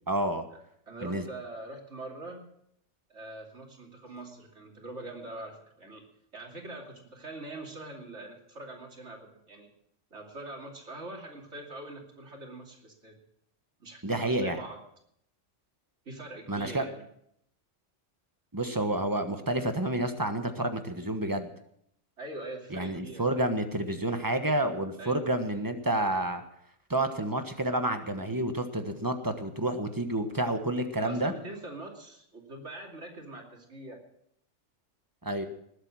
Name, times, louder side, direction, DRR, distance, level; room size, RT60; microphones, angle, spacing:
voice 1, 0.1-0.4 1.0-1.2 14.0-14.6 16.5-16.8 18.5-21.5 22.7-26.4 26.9-31.3 35.2-35.5, right 1 dB, 15° right, 7 dB, 1.3 m, -29 dB
voice 2, 0.9-2.4 3.1-6.0 6.3-9.7 10.1-13.2 13.8-14.8 16.0-17.0 22.2-23.2 25.0-25.2 31.0-34.0, right 2 dB, 70° right, 0 dB, 3.0 m, -43 dB
20.5 x 8.3 x 6.2 m, 0.72 s
omnidirectional pair, 1.3 m